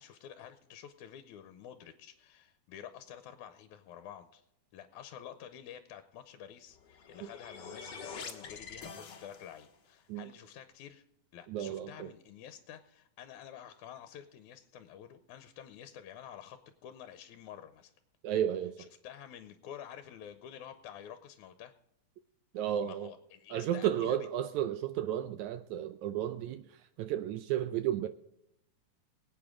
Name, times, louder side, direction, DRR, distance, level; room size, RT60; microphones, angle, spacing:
voice 1, 0.0-4.4 4.7-11.0 11.3-17.9 18.9-21.7 22.6-24.3, left 9 dB, 80° left, 2.1 m, -49 dB
sound 1, 6.7-9.8, left 5 dB, 50° left, 1.5 m, -46 dB
voice 2, 11.5-12.1 18.2-18.8 22.5-23.1 23.5-26.7 27.0-28.1, right 11 dB, 75° right, 1.9 m, -33 dB
23.5 x 8.7 x 3.7 m
omnidirectional pair, 3.6 m